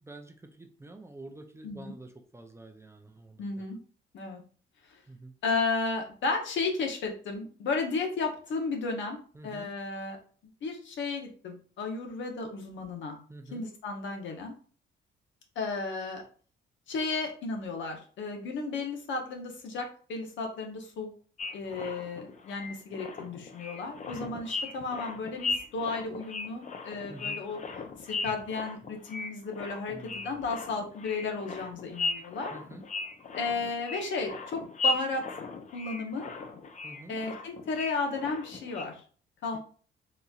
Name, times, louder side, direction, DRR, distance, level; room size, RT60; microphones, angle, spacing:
voice 1, 0.0-3.7 5.1-5.3 9.3-9.7 13.3-13.6 27.1-27.4 29.9-30.4 32.5-32.8 36.8-37.2 39.5-39.6, right 2 dB, 15° right, 4 dB, 0.5 m, -48 dB
voice 2, 3.4-3.8 4.1-4.4 5.4-10.2 10.6-13.2 13.5-14.5 15.6-16.2 16.9-21.1 21.5-27.6 28.0-32.5 33.3-35.2 35.7-36.3 37.1-39.0 39.4-39.6, left 3 dB, 70° left, 3 dB, 0.9 m, -33 dB
sound 1, 21.4-38.8, left 4 dB, 40° left, 0.6 m, -37 dB
4.0 x 2.7 x 2.4 m, 0.42 s
cardioid pair, 90°, 20 cm